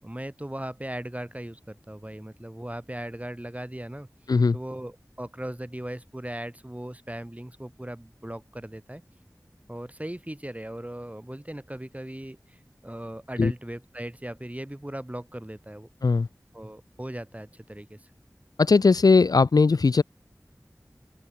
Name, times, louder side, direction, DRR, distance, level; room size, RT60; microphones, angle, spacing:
voice 1, 0.0-4.1 4.5-9.0 9.7-15.9 16.5-18.0, right 1 dB, 20° right, 5.5 m, -38 dB
voice 2, 18.6-20.0, left 4 dB, 70° left, 0.3 m, -19 dB
open air
wide cardioid pair, 45°, 7 cm